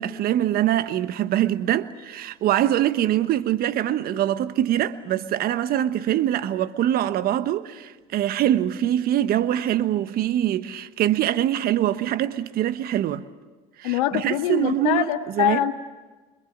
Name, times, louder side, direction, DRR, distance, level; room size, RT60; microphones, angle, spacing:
voice 1, 0.0-13.3 13.8-15.1 15.4-15.6, right 12 dB, 60° right, 1.2 m, -23 dB
voice 2, 13.8-15.7, left 14 dB, 80° left, 1.8 m, -24 dB
26.0 x 25.5 x 7.4 m
hypercardioid pair, 75°, 18 cm